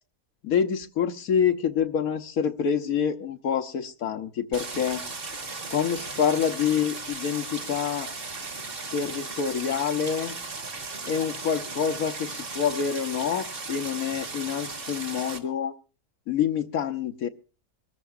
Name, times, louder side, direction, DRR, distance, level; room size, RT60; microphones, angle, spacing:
voice 1, 0.4-5.0 5.7-8.1 8.9-10.3 11.1-15.7 16.3-17.3, left 7 dB, 75° left, 5 dB, 1.3 m, -27 dB
Stream, 4.5-15.4, right 3 dB, 40° right, 1.8 m, -36 dB
24.5 x 14.0 x 2.5 m, 0.35 s
omnidirectional pair, 1.6 m